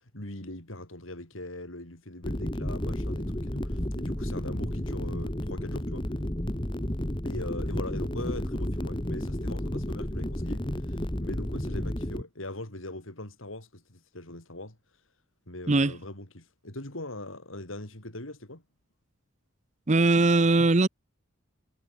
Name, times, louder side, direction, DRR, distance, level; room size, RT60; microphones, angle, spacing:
voice 1, 0.1-6.1 7.2-14.8 15.5-18.6, left 1 dB, 80° left, 5.5 m, -41 dB
sound 1, 2.2-12.2, left 1 dB, 25° left, 1.8 m, -32 dB
voice 2, 19.9-20.9, right 2 dB, 35° right, 0.7 m, -20 dB
head